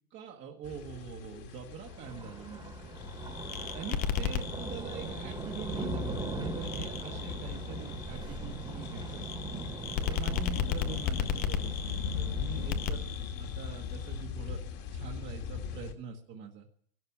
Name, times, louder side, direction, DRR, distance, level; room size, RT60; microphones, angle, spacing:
voice 1, 0.1-2.7 3.7-9.5 10.1-13.1 13.4-14.6 14.9-16.7, right 6 dB, 25° right, 1 dB, 1.3 m, -44 dB
sound 1, 0.6-15.9, left 7 dB, 40° left, 2.0 m, -40 dB
Thunder, 1.8-13.0, right 2 dB, 10° right, 1.6 m, -40 dB
sound 2, 2.9-14.2, left 8 dB, 20° left, 0.6 m, -36 dB
16.5 x 12.0 x 7.2 m, 0.63 s
hypercardioid pair, 140°, 42 cm